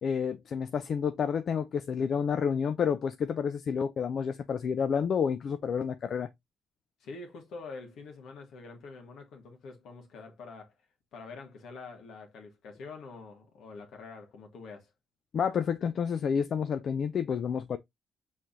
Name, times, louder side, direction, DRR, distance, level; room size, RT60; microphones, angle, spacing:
voice 1, 0.0-6.3 15.3-17.8, left 7 dB, 55° left, 0.4 m, -29 dB
voice 2, 7.0-10.7 11.1-14.9, left 4 dB, 75° left, 1.5 m, -46 dB
5.7 x 3.2 x 2.6 m
cardioid pair, 90°, 0 cm